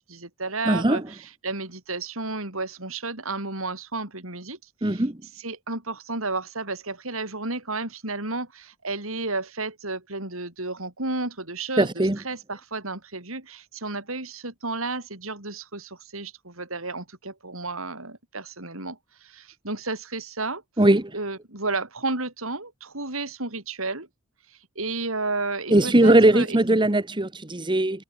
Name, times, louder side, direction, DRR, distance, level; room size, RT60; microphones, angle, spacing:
voice 1, 0.0-20.8 21.1-24.1 24.4-26.6, right 3 dB, 75° right, 7.0 m, -32 dB
voice 2, 0.7-1.0 4.8-5.2 11.8-12.2 20.8-21.1 25.7-28.0, right 1 dB, 20° right, 1.4 m, -19 dB
head